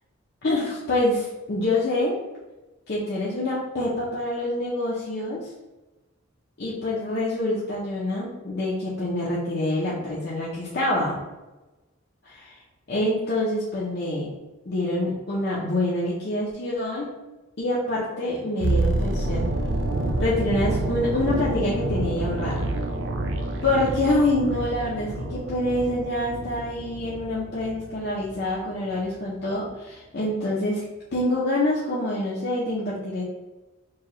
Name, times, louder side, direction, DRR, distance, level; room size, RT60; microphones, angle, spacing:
voice 1, 0.4-2.2 2.9-5.5 6.6-11.1 12.9-14.3 14.7-17.1 17.6-19.4 20.2-22.6 23.6-30.8 31.1-33.2, left 1 dB, 55° left, -7 dB, 0.7 m, -26 dB
sound 1, 18.6-28.6 28.9-29.1, right 2 dB, 65° right, 0.4 m, -28 dB
4.6 x 2.3 x 3.0 m, 1.1 s
head